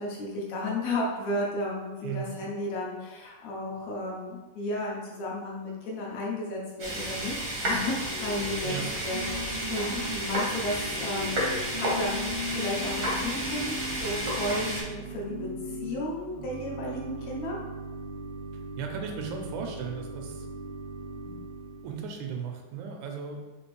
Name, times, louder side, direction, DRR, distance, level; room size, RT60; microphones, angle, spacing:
voice 1, 0.0-8.7 9.1-15.5 15.8-17.6, left 1 dB, 75° left, -3 dB, 2.0 m, -33 dB
voice 2, 2.0-2.4 8.6-8.9 18.8-20.5 21.2-21.5 21.8-23.5, right 6 dB, 85° right, 3 dB, 2.0 m, -36 dB
sound 1, 6.8-14.8, right 1 dB, 65° right, 0.9 m, -32 dB
Organ / Church bell, 8.0-22.1, equal, 30° right, 0.7 m, -38 dB
5.1 x 2.8 x 3.1 m, 1.2 s
omnidirectional pair, 3.4 m